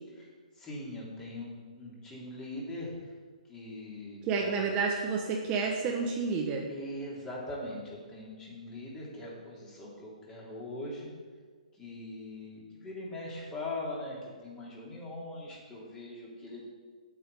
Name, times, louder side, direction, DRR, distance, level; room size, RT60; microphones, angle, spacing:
voice 1, 0.2-3.1 3.5-4.5 6.7-11.1 11.7-16.6, left 1 dB, 15° left, -4 dB, 3.1 m, -41 dB
voice 2, 4.2-6.7, right 5 dB, 25° right, 0 dB, 1.1 m, -30 dB
8.6 x 6.2 x 8.1 m, 1.5 s
hypercardioid pair, 140°, 4 cm